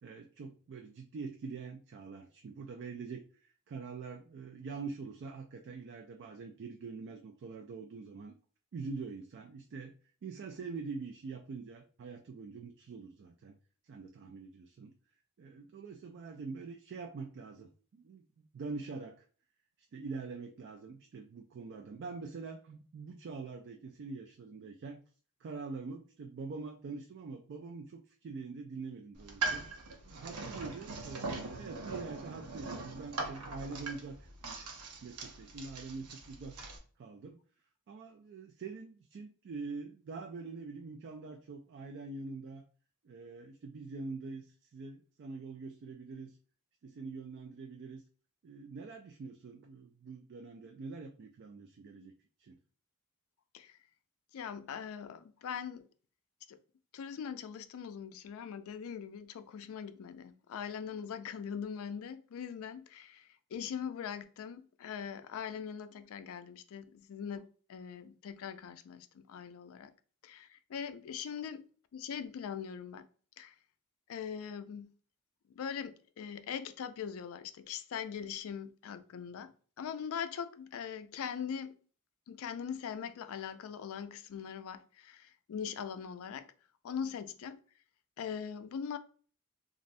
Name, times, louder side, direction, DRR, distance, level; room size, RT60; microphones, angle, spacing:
voice 1, 0.0-8.3 8.7-9.9 10.2-13.6 13.9-14.9 15.4-18.2 18.5-19.2 19.9-25.0 25.4-29.7 30.1-34.2 34.4-34.6 35.0-36.7 37.0-37.4 37.9-42.7 43.0-46.4 46.8-48.0 48.4-52.1 52.4-52.6, right 4 dB, 50° right, 0.3 m, -44 dB
sound 1, 29.2-36.8, right 3 dB, 85° right, 0.7 m, -41 dB
voice 2, 54.3-55.9 56.5-56.6 56.9-69.9 70.2-71.7 71.9-73.1 73.4-73.5 74.1-74.9 75.6-79.5 79.8-81.8 82.3-86.5 86.8-87.6 88.2-89.0, left 7 dB, 65° left, 0.3 m, -41 dB
3.2 x 2.5 x 2.5 m
head